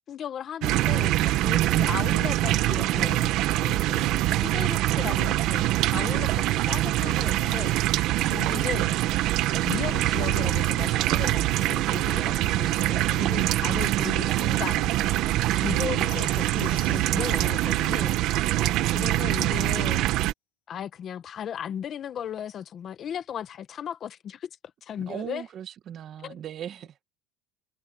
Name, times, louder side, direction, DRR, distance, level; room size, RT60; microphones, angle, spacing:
voice 1, 0.1-9.0 9.6-18.6 18.9-20.0 20.7-24.5 24.8-25.4 26.2-26.4, left 9 dB, 35° left, 1.3 m, -36 dB
sound 1, 0.6-20.3, right 15 dB, 55° right, 1.3 m, -24 dB
sound 2, 4.9-12.1, right 27 dB, 75° right, 6.1 m, -55 dB
voice 2, 8.5-9.2 13.2-14.6 25.1-26.9, right 10 dB, 35° right, 1.6 m, -38 dB
sound 3, 16.1-17.6, left 15 dB, 90° left, 4.9 m, -50 dB
cardioid pair, 150°, 0 cm